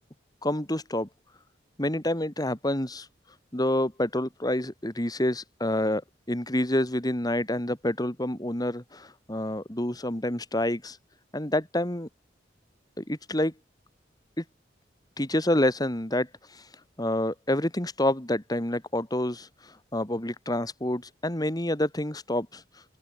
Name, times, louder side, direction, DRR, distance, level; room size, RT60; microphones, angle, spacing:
voice 1, 0.4-1.1 1.8-3.1 3.5-6.0 6.3-11.0 11.3-12.1 13.0-13.5 14.4-14.5 15.2-16.3 16.5-16.6 17.0-22.6, left 1 dB, 20° left, 2.8 m, -28 dB
head